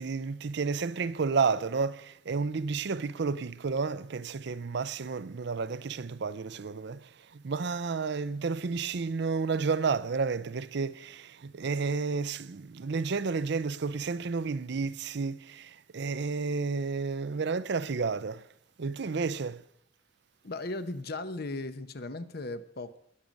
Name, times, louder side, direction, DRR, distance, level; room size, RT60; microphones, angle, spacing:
voice 1, 0.0-18.5 18.8-19.6, right 4 dB, 65° right, 0.5 m, -31 dB
voice 2, 20.4-23.0, left 2 dB, 55° left, 0.8 m, -37 dB
20.5 x 7.5 x 5.2 m
head